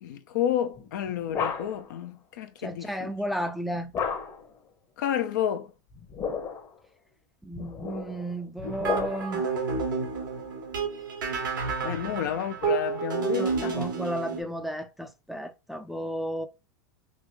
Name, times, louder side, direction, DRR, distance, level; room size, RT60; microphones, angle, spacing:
voice 1, 0.0-3.1 5.0-5.7 11.8-13.8, left 10 dB, 70° left, 0.6 m, -30 dB
sound 1, 0.8-2.0 3.9-4.6 5.9-6.7 7.5-9.5, left 6 dB, 35° left, 0.9 m, -33 dB
voice 2, 2.6-3.9 7.4-9.5 12.0-12.2 13.3-16.5, right 1 dB, ahead, 0.4 m, -33 dB
sound 2, 8.6-14.4, right 5 dB, 90° right, 1.5 m, -30 dB
3.7 x 2.6 x 3.1 m
hypercardioid pair, 105°, 10 cm